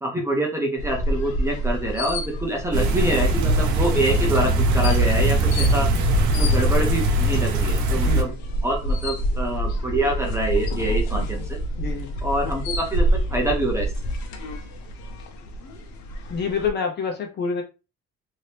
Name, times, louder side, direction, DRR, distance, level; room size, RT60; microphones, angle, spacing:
voice 1, 0.0-5.9 6.3-8.3 8.6-11.6 12.2-13.9, right 1 dB, 10° right, 0.6 m, -26 dB
sound 1, 0.8-16.7, equal, 70° left, 0.8 m, -29 dB
sound 2, 2.7-8.2, right 1 dB, 80° right, 0.8 m, -20 dB
voice 2, 7.9-8.4 11.2-11.4 11.8-12.1 16.3-17.6, left 5 dB, 35° left, 0.7 m, -28 dB
2.8 x 2.7 x 3.3 m
cardioid pair, 170°, 29 cm